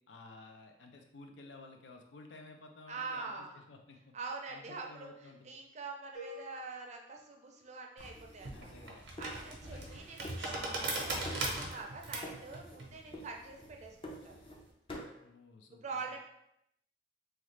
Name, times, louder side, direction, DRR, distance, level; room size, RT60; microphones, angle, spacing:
voice 1, 0.1-4.1 4.5-5.5 8.5-9.1 9.4-10.0 12.9-13.3 15.2-16.2, left 3 dB, 85° left, 4 dB, 0.5 m, -54 dB
voice 2, 2.9-3.6 4.1-8.7 9.2-14.4 15.7-16.2, right 4 dB, 40° right, 1 dB, 0.5 m, -45 dB
sound 1, 6.1-8.2, left 2 dB, 45° left, 0.8 m, -52 dB
sound 2, 8.0-9.9 10.2-11.0 11.2-11.9 12.2-12.8 13.1-14.6 14.9-15.2, equal, 30° left, 0.5 m, -49 dB
sound 3, 8.0-14.6, right 2 dB, 80° right, 0.7 m, -40 dB
3.1 x 2.3 x 3.1 m, 0.80 s
head